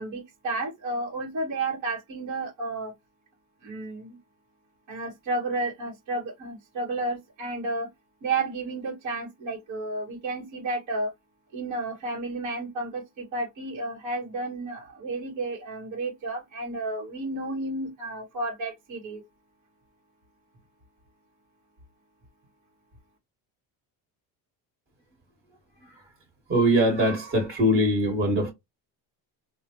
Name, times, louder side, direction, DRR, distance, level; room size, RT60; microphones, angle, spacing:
voice 1, 0.0-2.9 3.6-4.2 4.9-7.9 8.2-11.1 11.5-19.2, right 2 dB, 50° right, 1.6 m, -32 dB
voice 2, 26.5-28.5, equal, 35° right, 1.9 m, -22 dB
3.9 x 2.5 x 3.0 m
cardioid pair, 145°, 38 cm